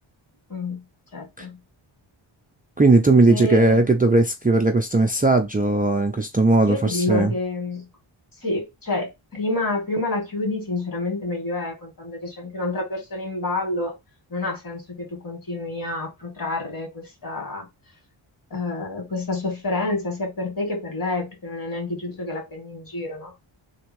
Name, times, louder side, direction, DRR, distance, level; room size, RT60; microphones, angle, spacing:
voice 1, 0.5-0.8 1.1-1.6 3.3-3.8 6.6-7.9 8.4-13.9 14.3-17.7 18.5-23.3, left 2 dB, 45° left, 2.5 m, -28 dB
voice 2, 2.8-7.3, right 2 dB, 20° right, 0.5 m, -18 dB
3.6 x 2.8 x 4.6 m
wide cardioid pair, 85°, 48 cm